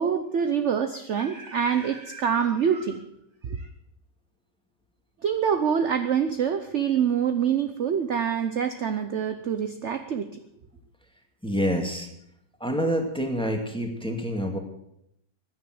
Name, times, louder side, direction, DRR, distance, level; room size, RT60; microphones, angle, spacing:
voice 1, 0.0-3.0 3.4-3.6 5.2-10.3, right 7 dB, 50° right, 8 dB, 1.0 m, -25 dB
voice 2, 11.4-12.1 12.6-14.6, equal, 5° left, 3 dB, 2.2 m, -27 dB
16.0 x 9.9 x 7.7 m, 0.76 s
omnidirectional pair, 1.9 m